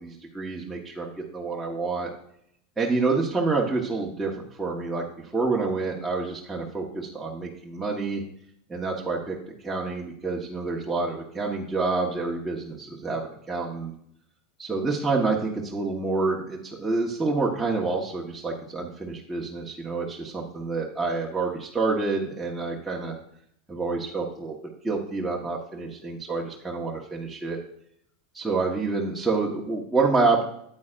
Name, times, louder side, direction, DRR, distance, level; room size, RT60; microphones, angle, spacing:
voice 1, 0.0-2.1 2.8-4.3 4.6-8.2 8.7-9.4 9.6-13.9 14.6-23.2 23.7-24.6 24.8-27.6 28.3-30.4, right 3 dB, 10° right, -4 dB, 1.4 m, -28 dB
9.3 x 8.7 x 2.5 m, 0.71 s
hypercardioid pair, 100°, 0 cm